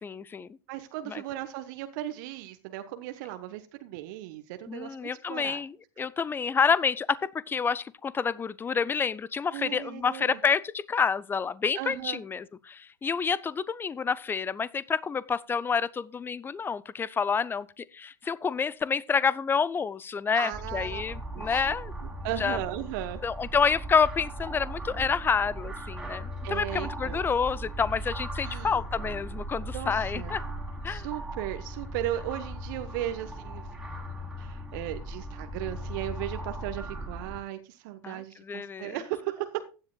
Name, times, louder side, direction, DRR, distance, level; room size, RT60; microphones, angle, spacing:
voice 1, 0.0-0.5 1.1-1.2 4.7-21.9 22.4-22.6 23.2-30.4 30.8-31.1 38.0-38.9, left 6 dB, 15° left, 0.6 m, -28 dB
voice 2, 0.7-5.6 9.5-10.4 11.7-12.2 20.3-21.0 21.3-21.7 22.0-23.2 26.4-27.2 28.4-28.8 29.7-30.4 30.9-33.8 34.4-39.6, right 13 dB, 55° right, 1.1 m, -36 dB
sound 1, 20.5-37.4, right 1 dB, 5° right, 3.5 m, -38 dB
15.5 x 10.5 x 2.3 m
figure-of-eight pair, 85°, 12 cm